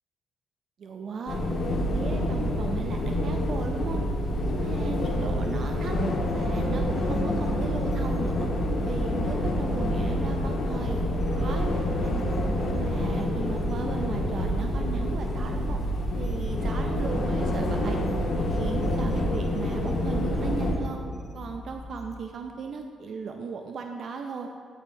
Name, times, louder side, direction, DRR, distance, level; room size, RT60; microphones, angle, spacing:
voice 1, 0.8-1.4 1.7-4.0 4.4-6.0 6.3-8.5 8.8-11.0 11.3-12.2 12.6-15.8 16.1-18.0 18.3-21.0 21.3-24.5, right 5 dB, 60° right, 4 dB, 0.4 m, -37 dB
sound 1, 1.3-20.7, left 1 dB, 70° left, 1.4 m, -27 dB
sound 2, 3.7-22.2, left 2 dB, 30° left, 1.0 m, -42 dB
11.0 x 4.3 x 2.7 m, 2.1 s
cardioid pair, 90°, 0 cm